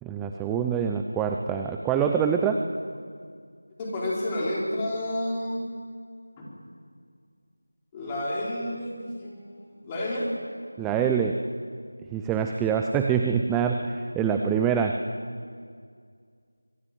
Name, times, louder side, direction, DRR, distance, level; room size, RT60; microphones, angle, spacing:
voice 1, 0.0-2.6 10.8-11.4 12.1-15.1, right 7 dB, 5° right, 4 dB, 0.6 m, -25 dB
voice 2, 3.8-5.6 6.4-6.5 7.9-9.5 9.8-10.3, left 1 dB, 10° left, -5 dB, 4.8 m, -30 dB
25.5 x 19.5 x 9.4 m, 2.1 s
figure-of-eight pair, 170°, 0 cm